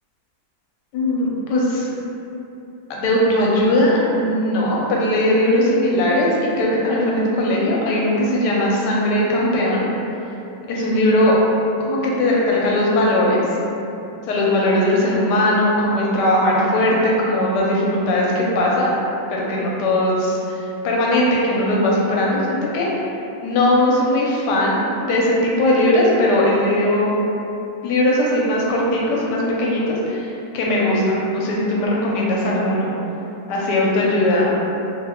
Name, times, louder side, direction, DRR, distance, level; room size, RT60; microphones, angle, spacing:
voice 1, 0.9-1.9 2.9-6.3 6.6-9.8 10.7-11.3 11.9-13.4 14.3-18.9 19.3-22.9 23.4-27.1 27.8-32.9 33.5-34.6, left 1 dB, 80° left, -4 dB, 1.2 m, -19 dB
3.0 x 2.2 x 3.4 m, 2.8 s
omnidirectional pair, 1.9 m